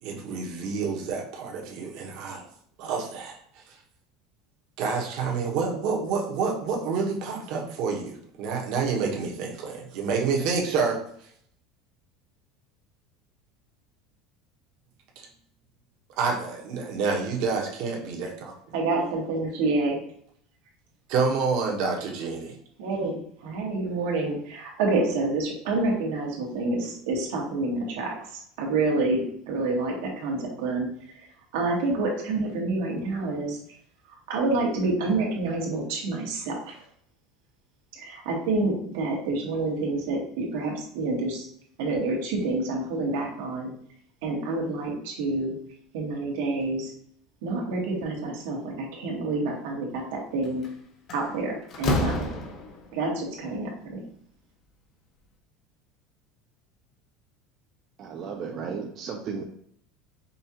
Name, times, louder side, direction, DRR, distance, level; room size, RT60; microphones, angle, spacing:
voice 1, 0.0-2.4 2.8-3.8 4.8-11.0 15.2-15.3 16.2-18.5 21.1-22.5, right 5 dB, 55° right, 0 dB, 1.0 m, -28 dB
voice 2, 18.7-20.0 22.8-28.1 28.6-30.9 31.5-33.6 34.3-36.8 37.9-41.4 41.8-43.7 44.2-45.6 45.9-46.9 47.4-50.6 51.1-52.3 52.9-54.0, right 2 dB, 85° right, -1 dB, 1.4 m, -28 dB
Slam, 50.4-50.7 51.1-53.0, left 1 dB, 35° left, 0.6 m, -29 dB
voice 3, 58.0-59.4, right 5 dB, 35° right, 1 dB, 0.5 m, -34 dB
5.3 x 2.4 x 2.8 m, 0.64 s
cardioid pair, 165°, 0 cm